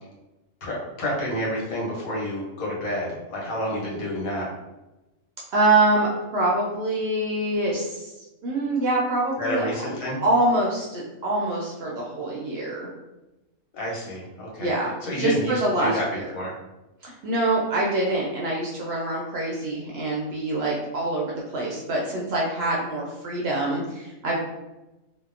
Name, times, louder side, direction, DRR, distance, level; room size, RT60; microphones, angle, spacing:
voice 1, 0.6-4.5 9.4-10.2 13.7-14.7 15.0-16.6, equal, 80° left, -4 dB, 1.2 m, -29 dB
voice 2, 5.5-8.1 8.4-9.7 10.2-12.9 14.6-16.2 17.0-24.4, right 2 dB, 65° right, -3 dB, 0.7 m, -25 dB
2.7 x 2.0 x 2.4 m, 1.0 s
omnidirectional pair, 1.4 m